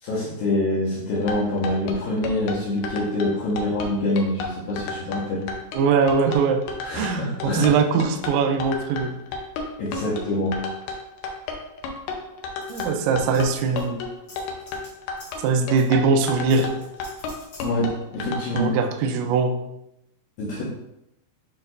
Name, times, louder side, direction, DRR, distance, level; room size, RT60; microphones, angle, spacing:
voice 1, 0.0-5.5 6.8-7.8 9.8-10.6 17.6-18.7 20.4-20.6, left 1 dB, 70° left, -7 dB, 2.2 m, -25 dB
sound 1, 1.2-18.6, left 4 dB, 85° left, 2.4 m, -32 dB
voice 2, 5.7-6.6 6.9-9.2 12.7-14.0 15.4-16.7 18.5-19.6, right 5 dB, 80° right, 5 dB, 2.7 m, -21 dB
sound 2, 12.6-13.5 13.8-13.9 14.3-14.9 15.2-15.5 15.8-15.9 16.5-17.7, left 1 dB, 40° left, 1.3 m, -45 dB
9.3 x 4.3 x 2.6 m, 0.83 s
omnidirectional pair, 5.9 m